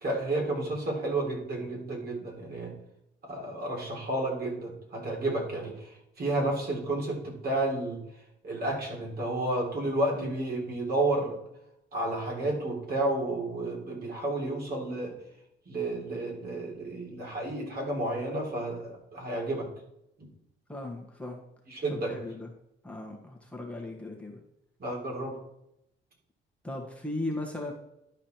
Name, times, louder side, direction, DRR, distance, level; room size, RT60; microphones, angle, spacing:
voice 1, 0.0-2.7 3.2-8.0 8.4-11.4 11.9-15.1 15.7-19.7 20.2-20.3 21.7-22.1 24.8-25.4, right 2 dB, 50° right, -2 dB, 3.6 m, -31 dB
voice 2, 20.7-21.4 21.9-22.5 22.8-24.4 26.6-27.7, left 2 dB, 5° left, 0 dB, 1.5 m, -37 dB
11.5 x 5.0 x 4.5 m, 0.81 s
cardioid pair, 90°, 20 cm